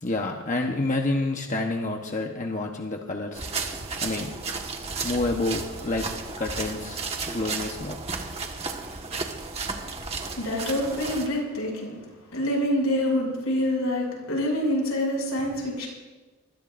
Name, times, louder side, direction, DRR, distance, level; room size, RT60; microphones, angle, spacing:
voice 1, 0.0-3.4 4.0-4.3 5.0-6.0 6.4-8.0, left 2 dB, 35° left, 2 dB, 1.0 m, -28 dB
sound 1, 3.3-11.3, right 4 dB, 30° right, 1.5 m, -33 dB
voice 2, 10.3-12.0 12.3-15.9, left 1 dB, 80° left, -1 dB, 6.9 m, -26 dB
25.5 x 21.0 x 2.6 m, 1.2 s
head